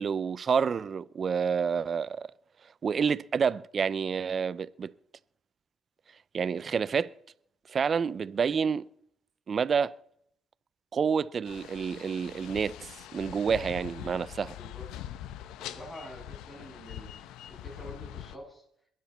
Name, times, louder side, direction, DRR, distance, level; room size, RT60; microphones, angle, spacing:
voice 1, 0.0-2.3 2.8-4.9 6.3-7.1 7.7-8.8 9.5-9.9 10.9-14.6, right 6 dB, 40° right, 0.5 m, -28 dB
sound 1, 11.5-18.4, left 12 dB, 85° left, 0.9 m, -43 dB
voice 2, 14.5-14.9 15.6-17.2 17.5-18.6, equal, 15° left, 7.9 m, -46 dB
22.0 x 12.0 x 4.3 m
cardioid pair, 105°, 0 cm